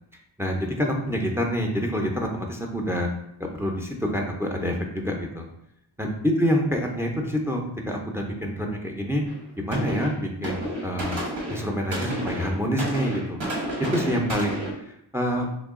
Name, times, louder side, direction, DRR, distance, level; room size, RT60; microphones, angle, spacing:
voice 1, 0.4-3.1 3.4-5.5 6.0-9.2 9.6-11.2 11.5-13.4 13.8-15.5, equal, 5° right, 1 dB, 0.5 m, -27 dB
sound 1, 9.3-9.4 9.7-14.7, right 1 dB, 85° right, 1.5 m, -31 dB
3.2 x 3.0 x 3.6 m, 0.77 s
wide cardioid pair, 110°, 43 cm